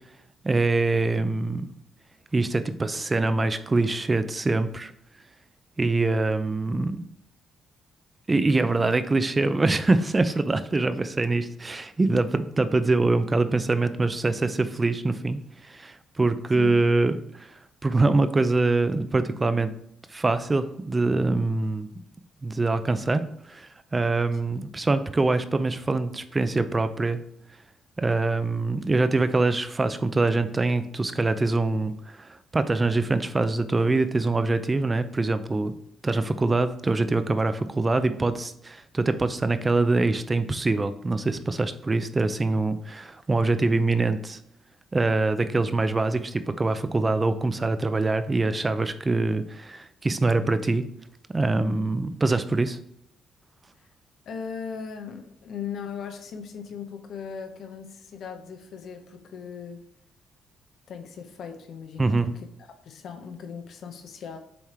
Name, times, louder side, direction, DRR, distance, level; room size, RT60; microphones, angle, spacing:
voice 1, 0.4-1.7 2.3-4.9 5.8-7.0 8.3-17.6 17.8-19.7 20.1-21.9 22.4-23.2 23.5-27.2 28.0-35.7 36.0-44.4 44.9-50.8 51.3-52.8 62.0-62.3, right 3 dB, 25° right, 11 dB, 0.5 m, -24 dB
voice 2, 8.3-8.7 16.6-16.7 54.3-59.8 60.9-62.3 62.8-64.4, left 7 dB, 65° left, 6 dB, 0.8 m, -38 dB
7.1 x 3.3 x 4.4 m, 0.75 s
cardioid pair, 90°, 0 cm